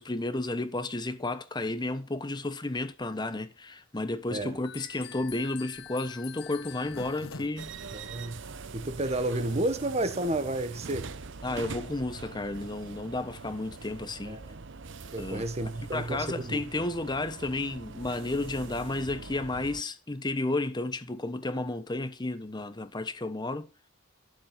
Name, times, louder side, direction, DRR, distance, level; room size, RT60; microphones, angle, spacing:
voice 1, 0.0-7.7 11.4-14.4 15.2-23.7, left 2 dB, 20° left, 0.9 m, -32 dB
Zipper (clothing), 4.4-8.7 9.2-9.3 9.4-9.5 9.8-10.1, left 3 dB, 90° left, 1.3 m, -47 dB
sound 1, 4.6-7.5, left 11 dB, 55° left, 0.9 m, -46 dB
sound 2, 7.6-19.8, right 4 dB, 65° right, 0.9 m, -43 dB
voice 2, 7.9-8.4 8.7-11.1 14.2-14.6 15.1-16.6, right 1 dB, 30° right, 1.3 m, -31 dB
12.5 x 7.4 x 5.6 m
head